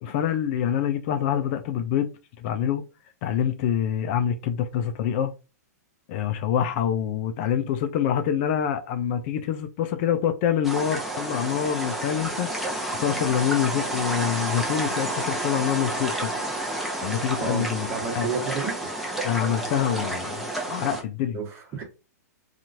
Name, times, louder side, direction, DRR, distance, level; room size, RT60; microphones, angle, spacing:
voice 1, 0.0-2.8 3.2-5.3 6.1-12.7 13.0-16.3 17.0-18.3 19.2-21.4, left 9 dB, 45° left, 0.5 m, -26 dB
sound 1, 10.6-21.0, right 1 dB, ahead, 0.8 m, -30 dB
voice 2, 17.4-18.8 21.3-21.8, right 5 dB, 30° right, 1.2 m, -31 dB
2.8 x 2.4 x 2.7 m
hypercardioid pair, 130°, 9 cm